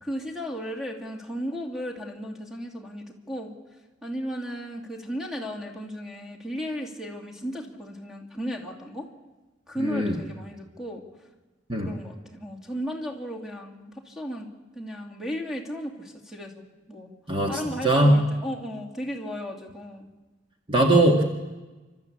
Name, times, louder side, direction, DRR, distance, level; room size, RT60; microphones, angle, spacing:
voice 1, 0.0-3.5 4.0-9.1 9.7-11.0 11.9-14.5 14.7-17.1 17.5-20.1, equal, ahead, 1 dB, 2.6 m, -35 dB
voice 2, 9.8-10.2 11.7-11.9 17.3-18.2 20.7-21.2, right 1 dB, 25° right, 1 dB, 1.8 m, -20 dB
29.5 x 13.0 x 8.6 m, 1.2 s
head